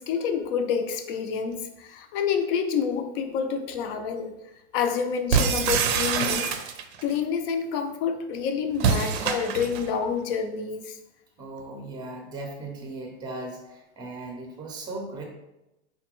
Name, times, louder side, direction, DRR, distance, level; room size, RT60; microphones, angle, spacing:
voice 1, 0.0-4.3 4.7-6.5 7.0-11.0, left 6 dB, 55° left, 7 dB, 0.5 m, -28 dB
sound 1, 5.3-7.0 8.8-9.9, right 7 dB, 70° right, 0.5 m, -25 dB
voice 2, 11.4-15.2, right 2 dB, 10° right, 2 dB, 0.6 m, -37 dB
4.0 x 2.2 x 2.9 m, 0.93 s
hypercardioid pair, 120°, 34 cm